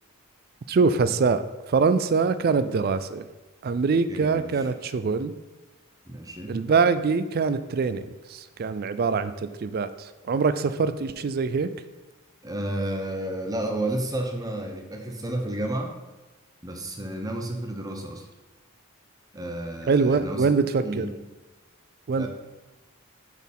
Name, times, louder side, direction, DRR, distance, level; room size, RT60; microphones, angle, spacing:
voice 1, 0.7-1.4 1.7-3.3 3.6-5.3 6.5-11.7 19.9-21.1 22.1-22.3, right 4 dB, 45° right, 12 dB, 0.3 m, -24 dB
voice 2, 4.1-4.7 6.1-6.6 12.4-15.9 16.6-18.3 19.3-20.5 20.8-21.1 22.2-22.3, right 1 dB, 15° right, 3 dB, 0.7 m, -31 dB
6.4 x 4.1 x 5.3 m, 1.2 s
head